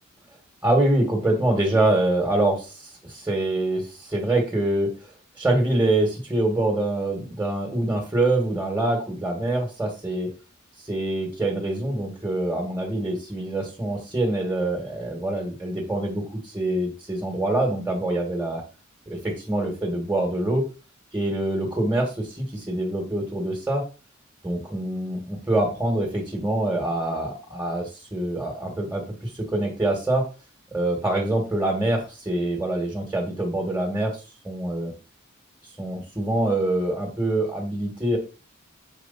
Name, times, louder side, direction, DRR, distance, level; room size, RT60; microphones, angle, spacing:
voice 1, 0.6-4.9 5.4-10.3 10.8-18.6 19.1-20.6 21.1-23.8 24.4-30.3 30.7-34.9 35.8-38.2, right 1 dB, 10° right, 0 dB, 1.9 m, -25 dB
7.9 x 4.7 x 4.2 m, 0.33 s
head